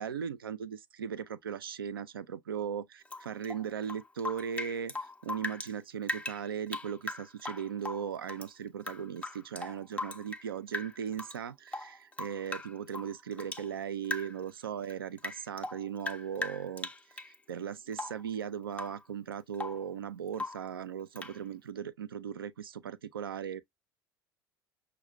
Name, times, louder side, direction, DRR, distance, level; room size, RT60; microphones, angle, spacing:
voice 1, 0.0-4.9 5.2-16.9 17.5-23.6, right 8 dB, 75° right, 0.4 m, -38 dB
Rain / Drip, 3.1-5.7 6.0-8.5 8.8-10.5 10.7-11.4 11.7-13.7 14.0-14.5 14.8-17.3 17.9-18.3 18.7-19.0 19.3-19.9 20.3-20.7 21.2-21.4, left 2 dB, 10° left, 0.5 m, -39 dB
6.2 x 2.2 x 2.2 m
figure-of-eight pair, 65°, 12 cm